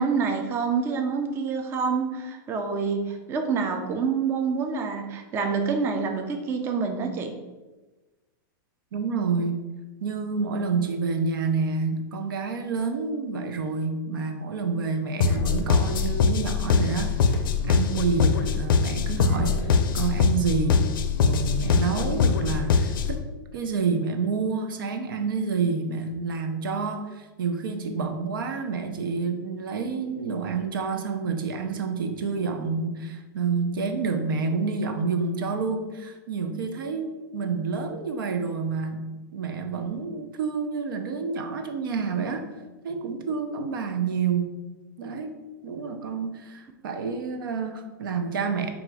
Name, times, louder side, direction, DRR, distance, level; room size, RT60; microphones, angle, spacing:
voice 1, 0.0-7.4, right 5 dB, 20° right, 5 dB, 0.4 m, -27 dB
voice 2, 8.9-9.6 10.0-20.8 21.2-23.3 23.5-42.5 42.8-44.6 45.0-45.4 45.6-48.7, right 4 dB, 85° right, 7 dB, 0.6 m, -28 dB
sound 1, 15.2-23.2, left 5 dB, 80° left, 0.5 m, -23 dB
3.9 x 2.4 x 4.7 m, 1.2 s
supercardioid pair, 150°, 11 cm